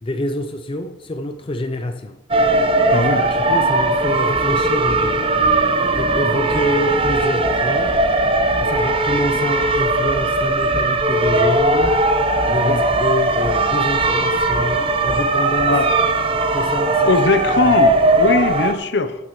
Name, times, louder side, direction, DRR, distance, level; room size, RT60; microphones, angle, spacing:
voice 1, 0.0-2.2 3.0-5.2 6.0-8.0 8.6-12.0 12.5-15.8 16.5-17.1 17.6-17.7, left 1 dB, 25° left, 0.4 m, -27 dB
sound 1, 2.3-18.7, right 2 dB, 30° right, 0.7 m, -18 dB
voice 2, 2.9-3.2 12.4-12.8 15.7-15.9 17.1-19.2, left 3 dB, 60° left, 0.8 m, -20 dB
sound 2, 4.3-15.7, left 1 dB, 5° left, 2.0 m, -35 dB
13.0 x 10.5 x 3.1 m
head